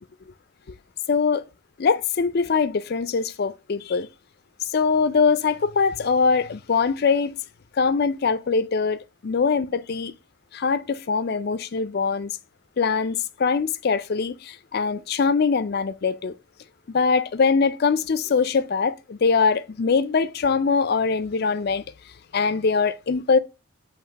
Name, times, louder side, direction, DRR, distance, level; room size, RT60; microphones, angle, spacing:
voice 1, 1.1-1.5 1.8-4.1 4.6-7.3 7.8-10.1 10.5-12.4 12.8-16.3 16.9-21.8 22.3-23.4, left 5 dB, 45° left, 0.4 m, -22 dB
7.6 x 2.9 x 4.5 m
head